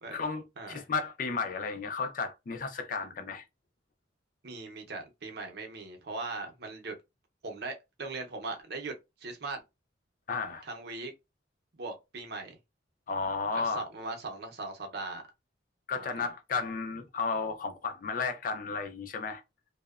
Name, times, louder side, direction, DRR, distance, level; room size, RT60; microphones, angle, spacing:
voice 1, 0.1-3.5 10.3-10.7 13.1-13.9 15.9-19.4, left 4 dB, 45° left, 0.4 m, -33 dB
voice 2, 4.4-6.9 7.4-8.9 9.2-9.6 10.6-11.1 11.8-12.6 13.5-15.2 16.0-16.2, right 3 dB, 55° right, 0.6 m, -39 dB
2.8 x 2.1 x 2.3 m
head